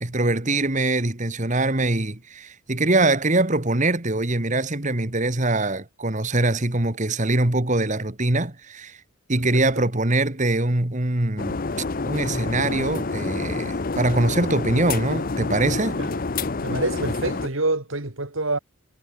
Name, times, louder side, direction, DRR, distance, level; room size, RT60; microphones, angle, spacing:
voice 1, 0.0-9.0 9.3-11.6 12.0-16.0, right 2 dB, 35° right, 1.9 m, -23 dB
voice 2, 9.5-9.9 16.0-16.1 16.6-18.6, right 2 dB, 70° right, 3.1 m, -26 dB
sound 1, 11.4-17.5, left 3 dB, 40° left, 0.7 m, -28 dB
head